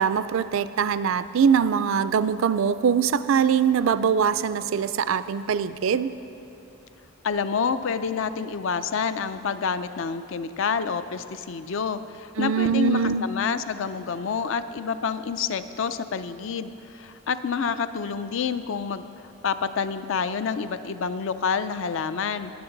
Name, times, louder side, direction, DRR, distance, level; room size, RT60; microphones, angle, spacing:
voice 1, 0.0-6.1 12.4-13.2, right 7 dB, 60° right, 14 dB, 0.3 m, -22 dB
voice 2, 7.2-19.1 19.4-22.5, left 6 dB, 60° left, 12 dB, 0.4 m, -28 dB
20.5 x 7.8 x 3.9 m, 2.9 s
head